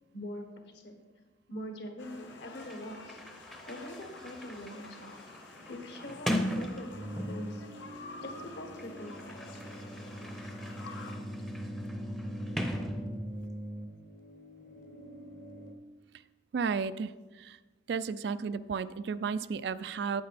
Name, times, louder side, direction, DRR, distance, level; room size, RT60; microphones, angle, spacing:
voice 1, 0.1-1.0 1.5-3.2 3.7-5.1 5.7-7.6 8.2-9.4 11.1-11.2, left 1 dB, 65° left, 4 dB, 1.4 m, -43 dB
sound 1, 2.0-11.1, left 3 dB, 90° left, 1.1 m, -50 dB
Sliding door, 2.3-2.4 2.6-7.6 8.6-13.5, equal, ahead, 0.6 m, -39 dB
sound 2, 6.9-15.7, equal, 50° left, 1.0 m, -41 dB
voice 2, 16.5-17.6 17.9-20.2, right 5 dB, 65° right, 14 dB, 0.3 m, -33 dB
8.7 x 8.7 x 4.1 m, 1.3 s
head